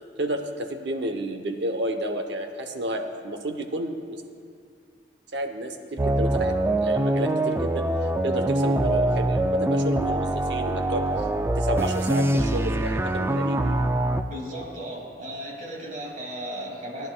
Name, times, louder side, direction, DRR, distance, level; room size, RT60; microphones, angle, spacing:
voice 1, 0.2-4.2 5.3-6.6 6.8-7.8 8.2-11.1 11.5-13.8, right 1 dB, 75° right, 5 dB, 0.8 m, -31 dB
sound 1, 6.0-14.2, right 1 dB, 15° right, 0.3 m, -24 dB
voice 2, 14.2-17.1, equal, 50° right, -3 dB, 2.3 m, -35 dB
17.5 x 10.5 x 2.2 m, 2.4 s
head